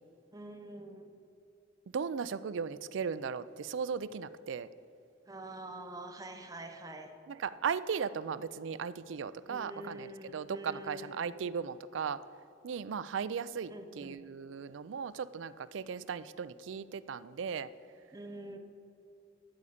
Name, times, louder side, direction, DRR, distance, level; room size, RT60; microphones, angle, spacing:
voice 1, 0.3-1.1 5.3-7.2 9.5-11.4 13.7-14.2 18.1-18.6, right 1 dB, 20° right, 4 dB, 0.8 m, -46 dB
voice 2, 1.9-4.7 7.3-10.1 10.3-12.2 12.6-17.7, right 6 dB, 75° right, 16 dB, 0.4 m, -37 dB
12.5 x 5.0 x 8.5 m, 2.6 s
head